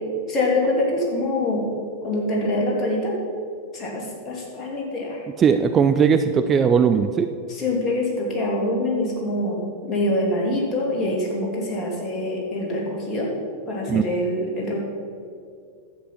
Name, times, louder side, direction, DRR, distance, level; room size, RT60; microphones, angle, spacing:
voice 1, 0.3-1.7 2.0-3.1 3.7-5.2 7.5-13.3 13.7-14.8, left 1 dB, 30° left, -2 dB, 2.9 m, -25 dB
voice 2, 5.4-7.3 13.9-14.0, right 6 dB, 25° right, 9 dB, 0.4 m, -18 dB
11.5 x 7.9 x 5.7 m, 2.4 s
figure-of-eight pair, 90°, 0 cm